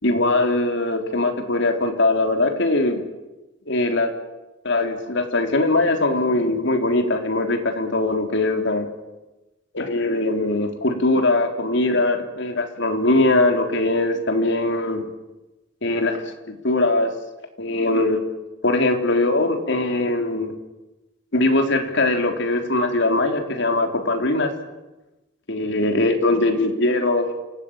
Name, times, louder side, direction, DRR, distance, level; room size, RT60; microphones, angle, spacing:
voice 1, 0.0-3.0 3.7-4.1 4.6-8.9 9.7-15.1 15.8-17.1 17.6-18.2 18.6-20.5 21.3-24.5 25.5-27.3, left 2 dB, 60° left, 5 dB, 3.7 m, -21 dB
28.0 x 19.0 x 9.0 m, 1.1 s
head